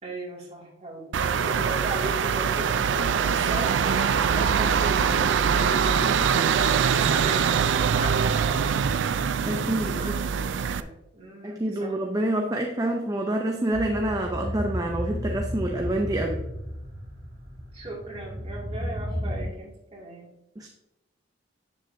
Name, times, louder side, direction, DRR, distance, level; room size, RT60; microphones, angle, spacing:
voice 1, 0.0-8.5 9.6-12.0 17.7-20.3, right 1 dB, 35° right, -4 dB, 2.1 m, -37 dB
sound 1, 1.1-10.8, right 7 dB, 75° right, 0.4 m, -23 dB
voice 2, 9.4-10.1 11.4-16.4 20.6-20.7, right 1 dB, 20° right, 2 dB, 0.5 m, -27 dB
sound 2, 13.7-19.5, equal, 55° right, 2.4 m, -33 dB
7.7 x 6.8 x 2.6 m, 0.92 s
head